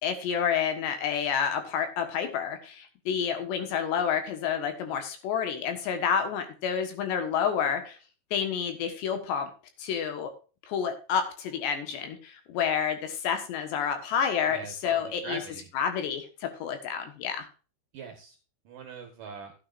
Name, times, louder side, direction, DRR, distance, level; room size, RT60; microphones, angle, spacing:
voice 1, 0.0-8.0 8.3-9.5 9.8-10.3 10.7-15.4 15.7-17.5, left 7 dB, 70° left, 7 dB, 3.4 m, -29 dB
voice 2, 14.5-15.7 17.9-18.4 18.6-19.5, right 5 dB, 60° right, 4 dB, 2.5 m, -41 dB
14.5 x 9.3 x 2.6 m, 0.35 s
omnidirectional pair, 5.5 m